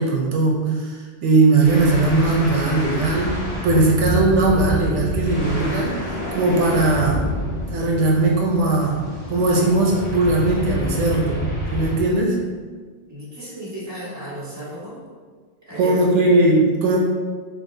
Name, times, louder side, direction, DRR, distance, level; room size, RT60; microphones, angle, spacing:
voice 1, 0.0-3.4 3.6-7.2 7.7-9.0 9.3-11.4 11.7-12.4 15.8-17.0, right 2 dB, 80° right, -1 dB, 1.0 m, -19 dB
sound 1, 1.6-12.1, equal, 35° left, 0.9 m, -28 dB
voice 2, 13.1-15.0 15.6-16.4, right 1 dB, 15° right, -9 dB, 1.4 m, -34 dB
4.0 x 2.9 x 3.8 m, 1.5 s
omnidirectional pair, 1.2 m